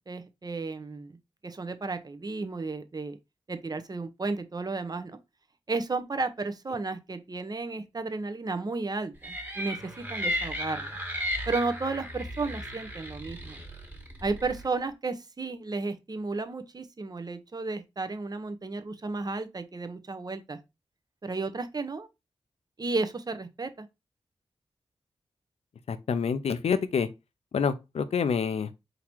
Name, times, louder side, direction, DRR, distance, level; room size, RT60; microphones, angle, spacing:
voice 1, 0.1-1.2 1.4-3.2 3.5-5.2 5.7-10.9 11.5-13.6 14.2-20.6 21.2-22.1 22.8-23.9, right 3 dB, 35° right, 0.7 m, -33 dB
sound 1, 9.2-14.7, equal, 15° right, 1.5 m, -35 dB
voice 2, 25.9-27.1 27.5-28.7, left 6 dB, 75° left, 0.5 m, -27 dB
3.9 x 2.8 x 4.5 m
cardioid pair, 65°, 11 cm